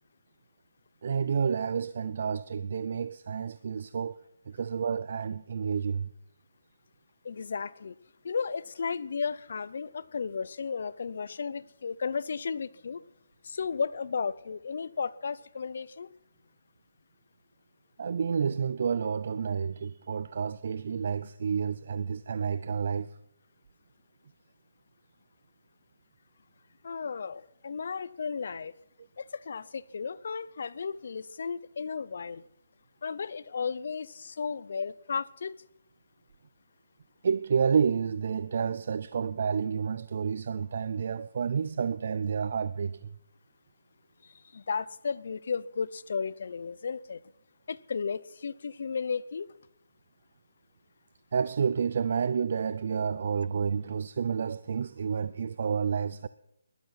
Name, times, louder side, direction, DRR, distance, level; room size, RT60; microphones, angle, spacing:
voice 1, 1.0-4.1 4.5-6.1 18.0-23.1 37.2-43.1 51.3-56.3, right 6 dB, 45° right, 0.5 m, -30 dB
voice 2, 7.2-7.9 8.2-13.0 13.4-16.1 26.8-28.7 29.2-32.4 33.0-35.5 44.2-47.2 47.7-49.5, left 5 dB, 55° left, 0.7 m, -34 dB
19.5 x 12.0 x 5.9 m
hypercardioid pair, 170°, 0 cm